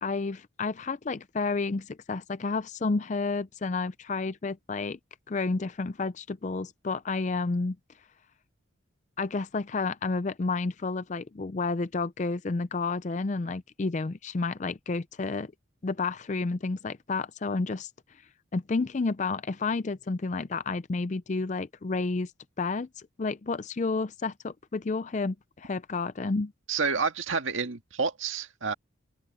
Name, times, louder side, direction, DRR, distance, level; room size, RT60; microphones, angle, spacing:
voice 1, 0.0-5.0 5.3-7.8 9.2-15.5 15.8-17.9 18.5-22.3 22.6-26.5, left 3 dB, 35° left, 0.4 m, -30 dB
voice 2, 26.7-28.7, right 5 dB, 85° right, 1.8 m, -29 dB
open air
head